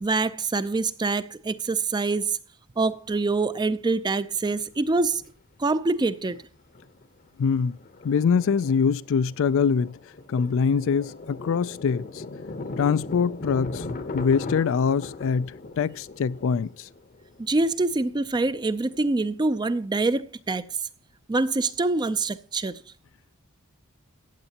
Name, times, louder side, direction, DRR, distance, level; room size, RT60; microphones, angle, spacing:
voice 1, 0.0-2.4 2.8-5.2 5.6-6.4 17.4-20.6 21.3-22.8, right 3 dB, 20° right, 0.4 m, -25 dB
Thunder, 3.1-3.2 4.5-5.3 5.6-5.7 6.1-6.4 6.7-19.1, left 3 dB, 40° left, 0.8 m, -39 dB
voice 2, 7.4-7.8 8.0-10.0 10.3-12.2 12.8-13.8 14.1-16.9, left 6 dB, 60° left, 0.4 m, -24 dB
15.0 x 8.8 x 2.8 m
head